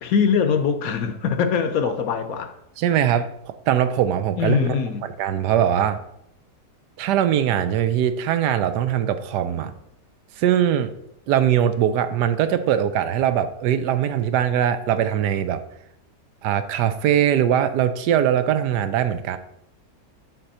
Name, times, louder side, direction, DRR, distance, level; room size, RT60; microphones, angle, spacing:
voice 1, 0.0-2.5 4.4-5.1, left 6 dB, 65° left, 8 dB, 1.0 m, -22 dB
voice 2, 2.8-6.0 7.0-9.7 10.4-10.9 11.3-15.6 16.4-19.4, right 10 dB, 85° right, 11 dB, 1.2 m, -21 dB
6.7 x 6.0 x 4.2 m, 0.79 s
omnidirectional pair, 1.8 m